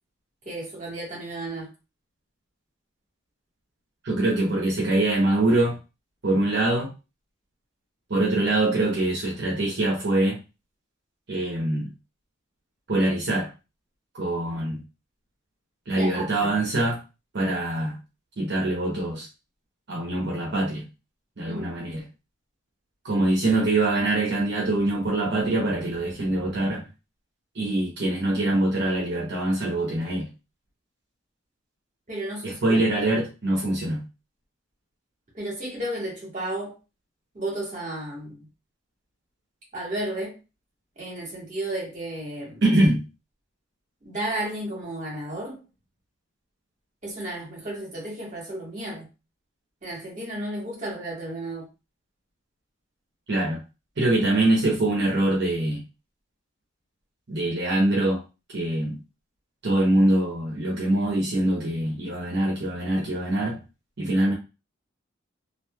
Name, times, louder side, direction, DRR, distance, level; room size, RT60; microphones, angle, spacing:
voice 1, 0.4-1.7 15.9-16.5 21.5-21.7 32.1-32.9 35.3-36.8 37.3-38.5 39.7-40.4 41.0-42.6 44.0-45.6 47.0-49.1 49.8-51.7, right 1 dB, 40° right, -3 dB, 1.4 m, -33 dB
voice 2, 4.0-5.8 6.2-6.9 8.1-10.4 11.3-11.9 12.9-13.5 14.1-14.8 15.9-17.0 17.3-18.0 18.4-19.3 19.9-20.8 21.4-22.0 23.0-26.8 27.5-30.3 32.4-34.0 42.6-43.1 53.3-53.6 54.0-55.8 57.3-58.2 58.5-59.0 59.6-63.6 64.0-64.3, right 1 dB, 60° right, -3 dB, 0.8 m, -24 dB
3.0 x 2.5 x 2.2 m, 0.29 s
head